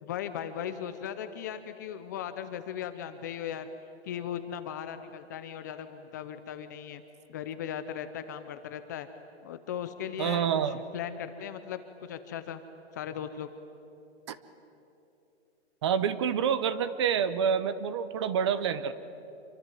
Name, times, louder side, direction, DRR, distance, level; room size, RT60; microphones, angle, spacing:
voice 1, 0.0-3.7 4.0-7.0 7.3-9.1 9.4-10.5 10.9-12.6 12.9-13.5, left 9 dB, 15° left, 9 dB, 0.5 m, -37 dB
voice 2, 10.2-10.8 14.3-14.4 15.8-18.9, right 7 dB, 25° right, 15 dB, 0.7 m, -27 dB
27.0 x 24.0 x 9.1 m, 2.9 s
hypercardioid pair, 165°, 33 cm